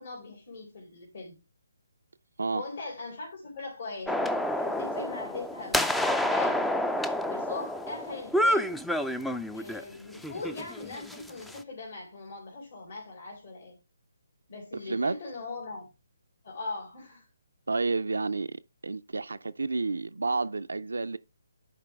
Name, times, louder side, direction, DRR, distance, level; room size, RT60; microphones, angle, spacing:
voice 1, 0.0-1.3 2.5-6.7 7.3-8.8 9.5-13.8 14.5-15.9 16.4-17.3, left 3 dB, 55° left, 3.2 m, -40 dB
sound 1, 4.1-9.8 10.2-11.6, left 1 dB, 5° left, 0.4 m, -29 dB
voice 2, 14.7-15.2 17.7-21.2, right 3 dB, 80° right, 0.4 m, -30 dB
11.0 x 4.5 x 3.4 m
figure-of-eight pair, 150°, 0 cm